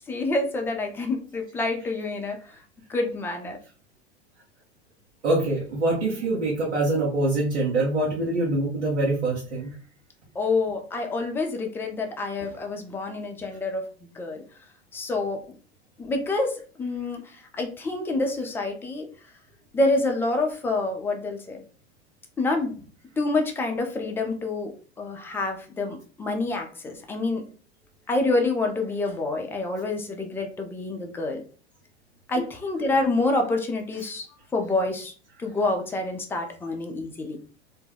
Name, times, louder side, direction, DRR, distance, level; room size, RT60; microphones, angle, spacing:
voice 1, 0.1-2.6 2.9-3.6 10.4-13.9 14.1-14.4 14.9-15.4 16.0-19.1 19.7-21.6 22.4-22.8 23.2-24.7 25.0-27.4 28.1-31.4 32.3-34.3 34.5-35.1 35.4-37.4, left 2 dB, 5° left, 2 dB, 0.3 m, -27 dB
voice 2, 5.2-9.7, right 2 dB, 85° right, -4 dB, 0.8 m, -24 dB
2.2 x 2.1 x 3.3 m, 0.39 s
hypercardioid pair, 95°, 34 cm